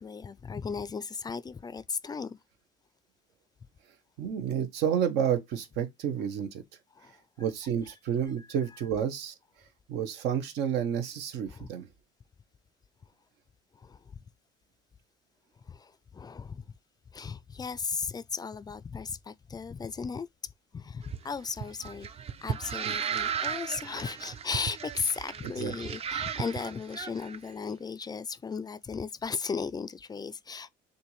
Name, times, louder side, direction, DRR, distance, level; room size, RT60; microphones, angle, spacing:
voice 1, 0.0-2.4 7.0-7.2 8.4-8.5 11.5-11.7 13.7-14.0 15.7-16.6 17.1-20.3 20.7-22.1 22.4-30.7, left 5 dB, 25° left, 0.3 m, -36 dB
voice 2, 4.2-6.6 7.4-9.3 9.9-11.9 22.9-23.0 25.6-25.7, right 8 dB, 85° right, 0.9 m, -30 dB
sound 1, 21.0-27.4, right 7 dB, 35° right, 0.5 m, -35 dB
6.6 x 2.6 x 3.1 m
cardioid pair, 110°, 17 cm